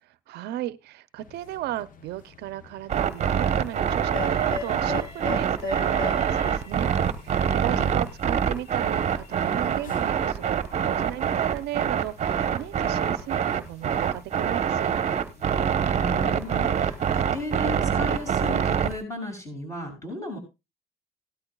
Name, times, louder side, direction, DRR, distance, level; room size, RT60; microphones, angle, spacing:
voice 1, 0.3-6.9 7.2-14.9, right 14 dB, 75° right, 15 dB, 0.6 m, -35 dB
sound 1, 1.2-17.8, left 8 dB, 55° left, 1.0 m, -43 dB
sound 2, 2.9-18.9, right 8 dB, 40° right, 1.0 m, -25 dB
Train, 3.8-7.2 8.1-13.3, equal, 20° right, 2.4 m, -48 dB
voice 2, 7.6-8.0 15.8-20.4, left 1 dB, 20° left, 3 dB, 7.1 m, -35 dB
17.0 x 12.5 x 2.3 m, 0.25 s
cardioid pair, 110°, 17 cm